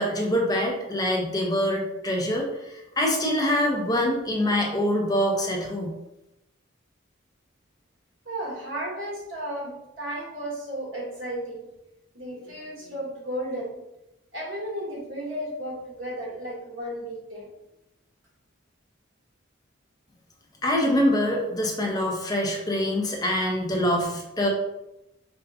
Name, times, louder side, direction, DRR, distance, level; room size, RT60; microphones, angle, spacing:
voice 1, 0.0-5.9 20.6-24.5, equal, 20° left, -1 dB, 0.6 m, -25 dB
voice 2, 8.2-11.6 12.1-13.8 14.3-17.5, right 1 dB, 85° right, -4 dB, 1.4 m, -34 dB
4.7 x 2.2 x 2.4 m, 0.90 s
head